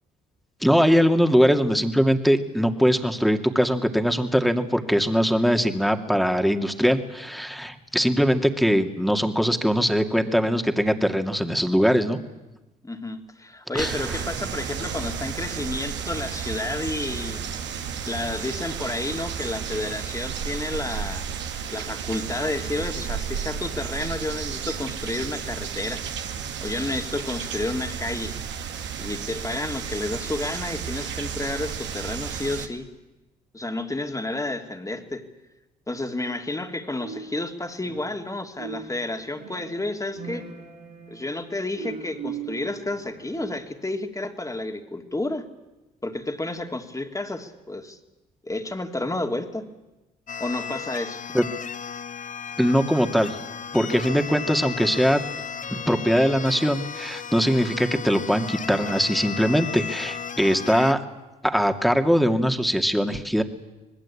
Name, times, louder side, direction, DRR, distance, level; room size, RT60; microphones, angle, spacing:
voice 1, 0.6-12.2 13.7-14.2 51.3-51.4 52.6-53.4 53.7-55.2 55.7-61.0 61.4-63.4, equal, ahead, 6 dB, 2.6 m, -21 dB
voice 2, 12.8-17.4 18.0-21.3 21.7-26.0 26.6-28.4 29.0-32.9 33.5-35.3 35.9-40.5 41.1-45.5 46.0-48.0 48.4-49.7 50.4-51.2, left 2 dB, 15° left, 5 dB, 2.9 m, -31 dB
sound 1, 13.8-32.7, right 7 dB, 75° right, 2.2 m, -32 dB
sound 2, 37.0-38.3 38.6-43.9, right 6 dB, 90° right, 4.2 m, -40 dB
sound 3, 50.3-60.9, left 6 dB, 40° left, 0.9 m, -35 dB
25.5 x 20.0 x 8.7 m, 1.0 s
supercardioid pair, 60°, 19 cm